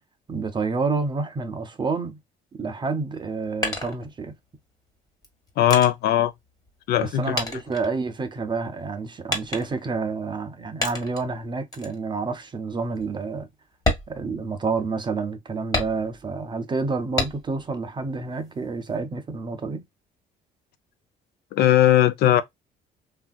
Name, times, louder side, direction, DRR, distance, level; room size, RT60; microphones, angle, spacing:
voice 1, 0.3-2.2 2.6-4.4 7.0-13.5 14.1-19.8, right 4 dB, 25° right, 0.5 m, -29 dB
sound 1, 3.1-4.6 5.2-7.1 7.4-8.5 9.3-10.0 10.8-11.3 11.7-12.0 12.4-12.5 13.0-13.1 13.7-14.9 15.7-16.4 17.2-17.7 18.1-19.0, left 2 dB, 20° left, 1.2 m, -30 dB
voice 2, 5.6-6.3 6.9-7.4 21.5-22.4, left 12 dB, 70° left, 0.5 m, -18 dB
3.3 x 2.5 x 2.2 m
cardioid pair, 110°, 17 cm